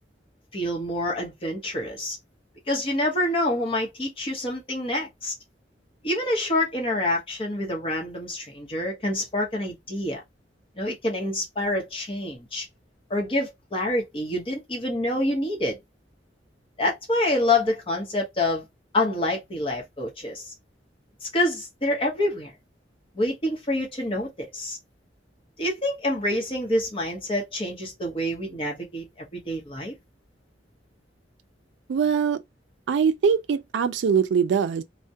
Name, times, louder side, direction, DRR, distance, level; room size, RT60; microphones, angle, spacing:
voice 1, 0.5-2.2 2.7-5.3 6.0-10.2 10.8-12.7 13.1-15.8 16.8-18.6 18.9-20.5 21.2-22.5 23.1-24.8 25.6-29.9, left 1 dB, 30° left, 0.8 m, -27 dB
voice 2, 31.9-32.4 32.9-34.8, right 6 dB, 80° right, 0.3 m, -22 dB
2.2 x 2.1 x 2.7 m
head